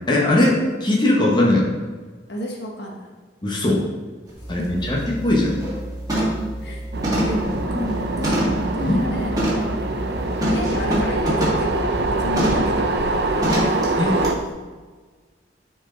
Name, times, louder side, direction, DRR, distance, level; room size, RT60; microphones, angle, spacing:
voice 1, 0.1-1.7 3.4-3.8 4.5-5.0 5.2-5.5 8.8-9.0 14.0-14.1, left 1 dB, 25° left, -3 dB, 1.3 m, -19 dB
voice 2, 2.3-3.1 4.4-5.2 6.6-6.8 7.3-9.8 10.3-14.0, left 1 dB, 75° left, 0 dB, 1.2 m, -32 dB
sound 1, 4.3-4.4 4.8-5.1 5.4-5.8 6.1-6.5 7.0-8.7 9.4-9.7 10.4-11.7 12.4-12.7 13.4-13.8 14.2-14.3, equal, 20° right, 2.0 m, -24 dB
sound 2, 4.4-13.1, right 1 dB, ahead, 1.9 m, -34 dB
sound 3, 6.9-14.4, right 2 dB, 65° right, 0.6 m, -24 dB
9.7 x 4.6 x 3.9 m, 1.4 s
head